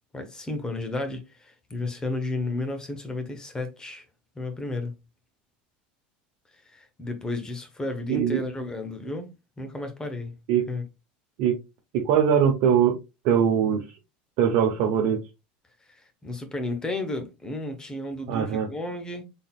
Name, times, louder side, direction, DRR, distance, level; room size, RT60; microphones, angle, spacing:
voice 1, 0.1-4.0 4.3-5.0 6.5-9.3 9.6-10.4 10.7-10.8 15.9-19.2, left 2 dB, 15° left, 1.1 m, -33 dB
voice 2, 8.1-8.4 10.5-10.6 11.4-11.6 11.9-13.0 13.2-13.8 14.4-15.2 18.3-18.7, right 8 dB, 65° right, 1.0 m, -21 dB
3.9 x 3.8 x 2.4 m
supercardioid pair, 105°, 4 cm